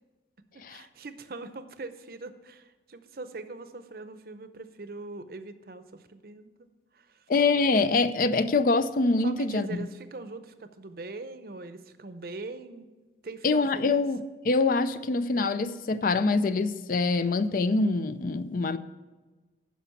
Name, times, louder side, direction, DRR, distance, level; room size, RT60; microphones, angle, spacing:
voice 1, 0.5-6.7 6.9-7.3 9.2-12.9 13.2-14.0, right 3 dB, 55° right, 0.7 m, -42 dB
voice 2, 7.3-9.9 13.4-18.8, left 3 dB, 50° left, 0.4 m, -25 dB
10.0 x 5.9 x 7.1 m
head